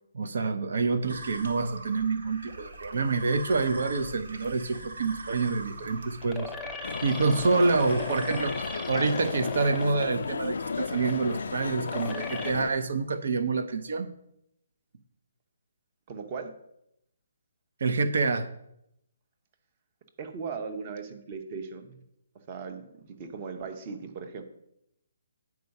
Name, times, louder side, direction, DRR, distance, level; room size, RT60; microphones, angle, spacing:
voice 1, 0.1-14.1 17.8-18.5, right 4 dB, 65° right, 10 dB, 0.6 m, -27 dB
sound 1, 1.1-8.8, right 2 dB, 90° right, 1.8 m, -42 dB
sound 2, 5.0-12.5, left 4 dB, 5° left, 0.7 m, -40 dB
sound 3, 6.8-12.7, left 5 dB, 70° left, 0.3 m, -34 dB
voice 2, 16.1-16.5 20.2-22.0 22.5-24.4, right 5 dB, 30° right, 7 dB, 0.8 m, -38 dB
9.2 x 4.7 x 5.3 m, 0.79 s
hypercardioid pair, 170°, 0 cm